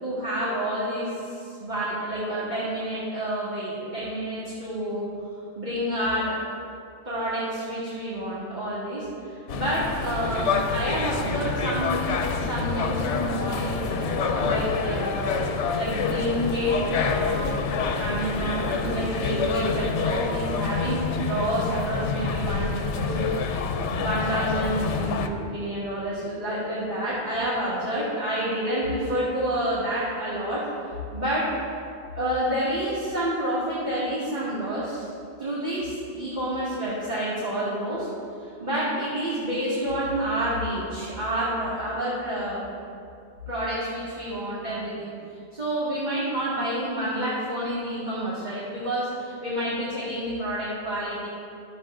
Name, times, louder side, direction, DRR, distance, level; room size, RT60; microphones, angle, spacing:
voice 1, 0.0-5.0 5.6-6.4 7.0-17.6 18.0-23.2 24.0-30.6 31.1-31.5 32.1-35.1 35.4-38.1 38.4-42.7 43.5-45.1 45.5-51.3, right 1 dB, 40° right, -10 dB, 2.2 m, -29 dB
sound 1, 9.5-25.3, left 5 dB, 85° left, 1.0 m, -27 dB
12.5 x 8.0 x 3.8 m, 2.5 s
omnidirectional pair, 1.2 m